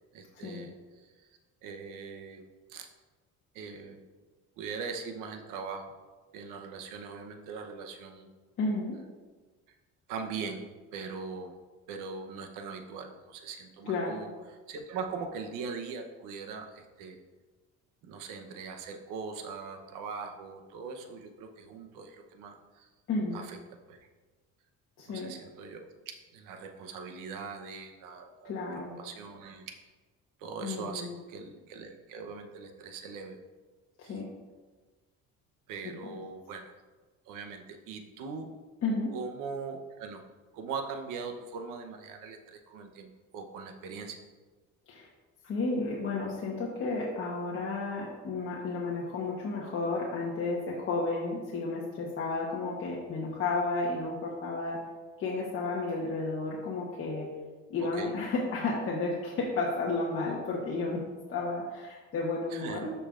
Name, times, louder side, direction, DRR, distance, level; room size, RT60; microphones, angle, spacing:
voice 1, 0.1-1.1 1.6-2.4 2.7-2.9 3.5-4.0 4.6-5.8 6.3-8.3 10.1-10.7 10.9-11.5 11.9-17.2 18.0-22.9 23.3-23.6 23.9-24.0 25.1-25.9 26.3-28.5 29.0-29.6 30.4-33.4 34.0-34.2 35.7-36.7 37.3-38.5 39.1-40.2 40.5-44.2 57.8-58.1 62.5-62.8, right 5 dB, 90° right, 4 dB, 0.9 m, -41 dB
voice 2, 8.6-9.0 13.9-14.3 23.1-23.4 25.0-25.3 28.4-29.0 30.6-31.1 34.0-34.3 38.8-39.1 44.9-45.1 45.4-54.9 55.2-57.3 57.7-61.0 61.3-62.9, left 3 dB, 45° left, -5 dB, 1.2 m, -32 dB
13.0 x 5.5 x 2.5 m, 1.3 s
cardioid pair, 155°, 31 cm